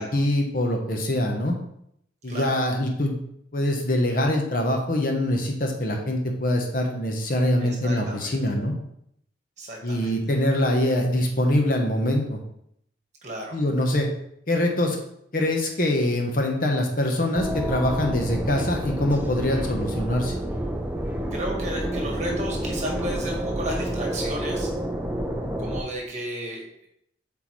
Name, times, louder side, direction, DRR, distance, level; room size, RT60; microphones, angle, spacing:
voice 1, 0.0-1.5 2.2-3.2 3.5-8.7 9.8-12.4 13.5-14.1 14.5-15.0 15.3-20.3, left 1 dB, 45° left, 2 dB, 0.9 m, -24 dB
voice 2, 2.3-2.6 7.6-8.3 9.6-10.2 13.2-13.6 21.3-24.7 25.6-26.9, right 1 dB, 40° right, 0 dB, 1.3 m, -33 dB
sound 1, 17.3-25.8, right 1 dB, 10° right, 0.5 m, -29 dB
7.9 x 3.8 x 3.1 m, 0.73 s
head